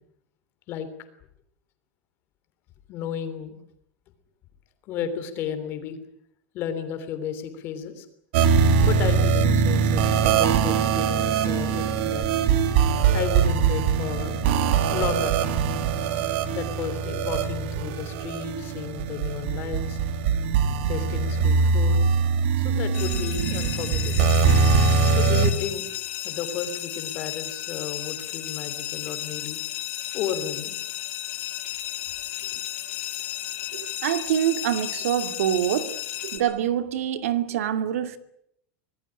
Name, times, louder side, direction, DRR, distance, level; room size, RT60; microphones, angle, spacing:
voice 1, 2.9-3.5 4.9-6.0 6.5-8.0 8.8-12.2 13.1-14.4 14.9-20.0 20.9-22.1 22.6-24.3 25.0-25.9 26.2-29.6 30.1-30.8 32.4-32.5, left 8 dB, 30° left, 3.3 m, -33 dB
sound 1, 8.3-25.5, right 5 dB, 50° right, 2.4 m, -22 dB
sound 2, 22.9-36.4, left 13 dB, 60° left, 5.0 m, -33 dB
voice 2, 33.7-36.0 36.3-38.2, right 10 dB, 85° right, 2.4 m, -25 dB
26.0 x 19.0 x 9.9 m
supercardioid pair, 180°, 7 cm